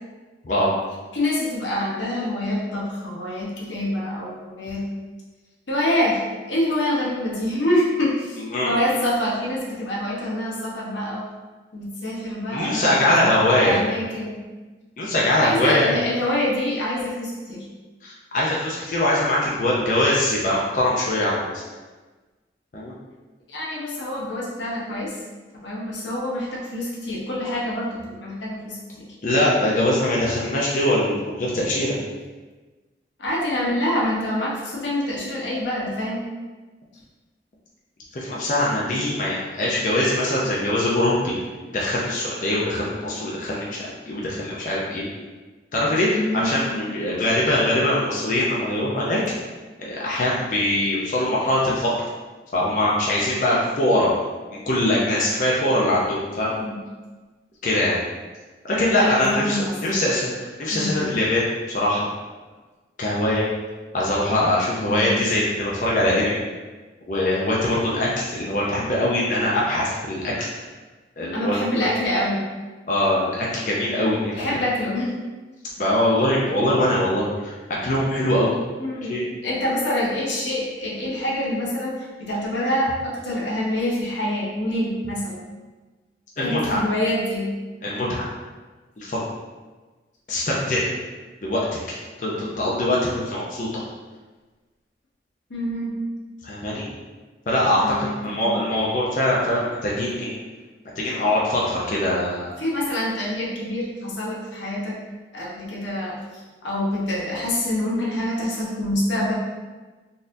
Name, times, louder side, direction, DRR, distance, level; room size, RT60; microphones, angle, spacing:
voice 1, 1.1-4.8 5.7-11.3 11.7-14.4 15.3-17.7 23.5-25.2 25.6-29.1 33.2-36.2 46.1-46.5 56.6-56.8 58.9-60.0 60.7-61.0 64.9-65.2 71.3-72.5 74.3-75.1 78.8-79.1 79.4-85.4 86.4-87.5 95.5-96.0 97.8-98.6 102.6-105.0 105.3-109.4, left 1 dB, 90° left, -5 dB, 0.9 m, -26 dB
voice 2, 8.4-8.7 12.5-13.8 15.0-15.9 18.0-21.6 22.7-22.9 29.2-32.0 38.1-41.3 41.7-45.0 45.7-49.2 49.8-51.9 52.5-54.1 54.5-56.6 57.6-58.0 58.6-62.1 63.0-63.5 63.9-66.4 67.1-70.5 71.2-71.9 72.9-74.6 75.8-77.5 77.8-78.5 79.1-79.2 86.4-86.8 87.8-88.3 89.0-89.2 90.3-90.9 91.4-93.8 96.4-96.9 97.5-100.3 101.0-102.6, left 1 dB, 45° left, -5 dB, 0.5 m, -22 dB
4.0 x 2.5 x 2.6 m, 1.3 s
head